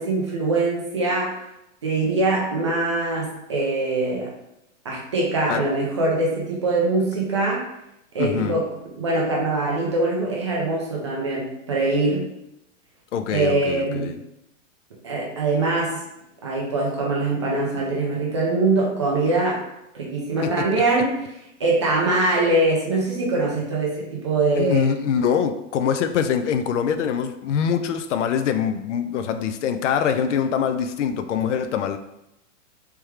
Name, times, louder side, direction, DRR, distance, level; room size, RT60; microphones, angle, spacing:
voice 1, 0.0-1.4 1.8-4.3 4.8-7.6 8.1-8.7 9.0-12.2 13.3-14.1 15.0-16.0 16.4-19.6 19.9-21.2 21.6-24.9, right 2 dB, 25° right, -4 dB, 0.3 m, -23 dB
voice 2, 8.2-8.6 13.1-14.2 20.4-20.8 24.6-32.0, left 7 dB, 65° left, 9 dB, 0.5 m, -24 dB
3.4 x 3.2 x 3.1 m, 0.85 s
hypercardioid pair, 160°, 39 cm